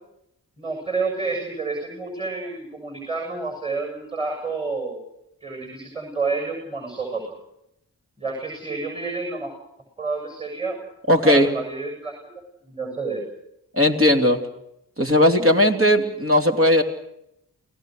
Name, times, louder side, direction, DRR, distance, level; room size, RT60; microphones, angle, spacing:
voice 1, 0.6-5.0 5.4-7.3 8.2-9.5 10.0-10.8 11.2-12.2 12.6-13.2, right 3 dB, 15° right, 2 dB, 7.3 m, -29 dB
voice 2, 11.1-11.5 13.7-14.4 15.0-16.8, left 1 dB, 35° right, 2 dB, 3.1 m, -17 dB
29.5 x 17.5 x 6.5 m, 0.80 s
cardioid pair, 45°, 38 cm